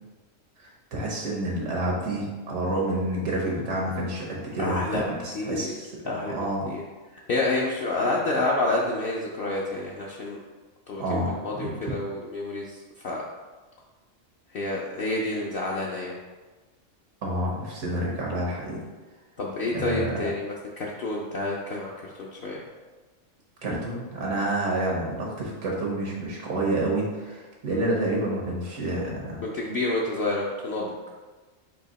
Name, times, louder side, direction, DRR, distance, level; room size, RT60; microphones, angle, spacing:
voice 1, 0.9-5.9 6.3-6.7 11.0-11.9 17.2-18.8 19.7-20.2 23.6-29.4, right 1 dB, 85° right, -3 dB, 1.3 m, -28 dB
voice 2, 4.6-5.0 5.3-5.7 6.1-6.4 6.6-6.8 7.3-10.4 10.9-12.8 13.0-13.2 14.5-16.2 19.4-21.9 22.2-22.6 27.7-27.9 29.4-30.9, left 2 dB, 60° left, -3 dB, 0.7 m, -28 dB
4.7 x 2.8 x 4.0 m, 1.3 s
omnidirectional pair, 1.3 m